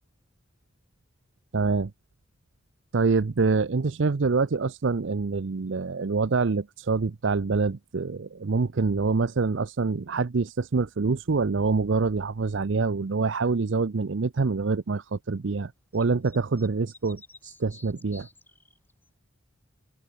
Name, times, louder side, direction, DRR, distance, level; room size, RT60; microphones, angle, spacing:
voice 1, 1.5-1.9 2.9-18.3, right 4 dB, 60° right, 0.6 m, -26 dB
sound 1, 15.9-19.1, left 3 dB, 10° left, 2.6 m, -52 dB
head